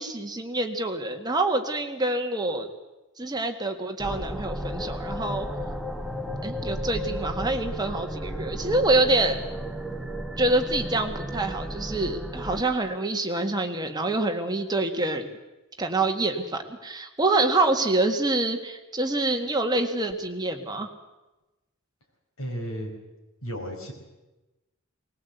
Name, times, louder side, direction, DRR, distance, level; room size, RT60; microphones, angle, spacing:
voice 1, 0.0-2.7 3.2-5.5 6.4-9.4 10.4-15.3 15.8-20.9, right 2 dB, 20° right, 4 dB, 1.7 m, -26 dB
sound 1, 4.0-12.6, equal, ahead, 1.2 m, -33 dB
voice 2, 22.4-22.9 23.4-23.9, equal, 75° left, 1 dB, 5.5 m, -33 dB
20.0 x 19.5 x 8.1 m, 1.1 s
head